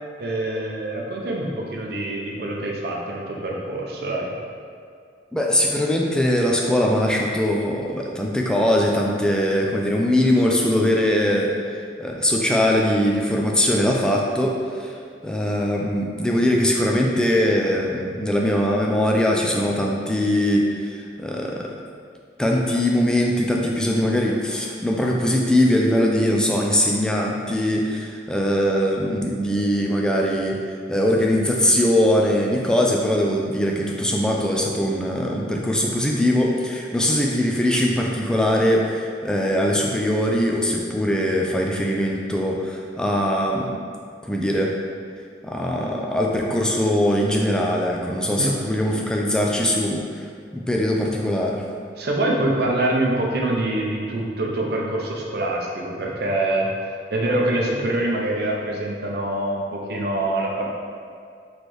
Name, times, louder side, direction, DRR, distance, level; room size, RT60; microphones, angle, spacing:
voice 1, 0.2-4.4 48.4-48.5 52.0-56.7 57.1-60.7, right 1 dB, 60° right, -1 dB, 0.6 m, -25 dB
voice 2, 5.3-15.0 15.2-21.7 22.4-30.6 30.9-43.7 44.2-44.7 45.4-50.3 50.5-51.6, left 1 dB, 5° left, -1 dB, 0.3 m, -21 dB
4.3 x 3.2 x 3.1 m, 2.2 s
head